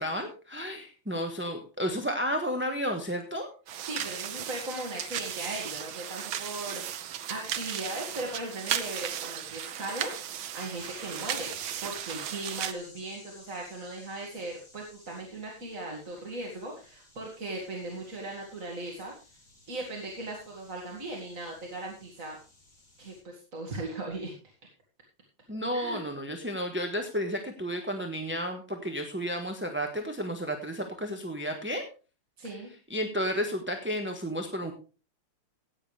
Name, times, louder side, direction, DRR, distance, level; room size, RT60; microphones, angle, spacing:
voice 1, 0.0-3.5 25.5-31.8 32.9-34.7, equal, 10° right, 3 dB, 0.9 m, -32 dB
sound 1, 3.7-12.7, right 10 dB, 75° right, 1.7 m, -36 dB
voice 2, 3.8-19.1 19.7-22.4 23.0-24.3 25.7-26.0 32.4-32.7, right 2 dB, 40° right, -1 dB, 2.6 m, -38 dB
sound 2, 10.8-23.2, left 2 dB, 50° left, 4.6 m, -56 dB
15.5 x 9.7 x 3.4 m, 0.34 s
omnidirectional pair, 2.4 m